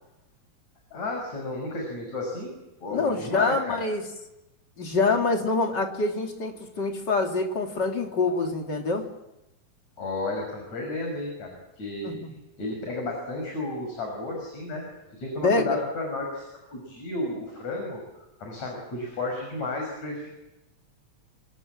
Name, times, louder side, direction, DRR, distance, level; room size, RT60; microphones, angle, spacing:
voice 1, 0.9-2.6 2.8-3.8 10.0-12.1 12.6-14.8 15.2-16.4 16.7-18.0 18.4-20.4, left 2 dB, 65° left, 1 dB, 7.3 m, -32 dB
voice 2, 2.9-4.0 4.8-9.1 12.0-12.3 15.4-15.8, left 3 dB, 35° left, 3 dB, 3.2 m, -25 dB
28.5 x 26.0 x 7.4 m, 0.95 s
omnidirectional pair, 3.4 m